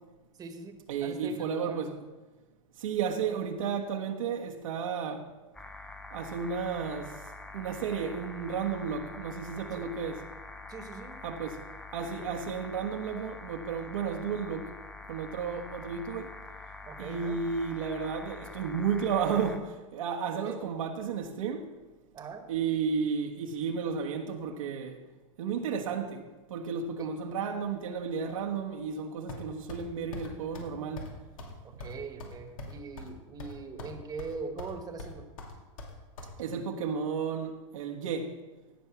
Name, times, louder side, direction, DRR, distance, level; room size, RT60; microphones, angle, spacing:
voice 1, 0.4-1.9 9.7-9.9 10.7-11.2 16.8-17.4 20.4-20.6 22.1-22.5 27.0-27.1 31.6-35.3, right 4 dB, 20° right, 1.3 m, -41 dB
voice 2, 0.9-2.0 2.8-5.3 6.1-7.2 7.5-10.2 11.2-11.6 11.9-14.7 15.1-16.3 17.0-21.7 22.5-25.0 25.4-31.0 36.4-38.3, right 6 dB, 85° right, 1.4 m, -33 dB
sound 1, 5.5-19.6, left 3 dB, 5° left, 0.7 m, -46 dB
sound 2, 29.3-29.8 30.1-30.3 30.5-30.7 31.0-31.1 31.4-31.5 31.8-33.1 33.4-33.9 34.2-34.7 35.0-36.3, left 2 dB, 80° left, 2.5 m, -42 dB
16.0 x 5.5 x 6.0 m
hypercardioid pair, 130°, 17 cm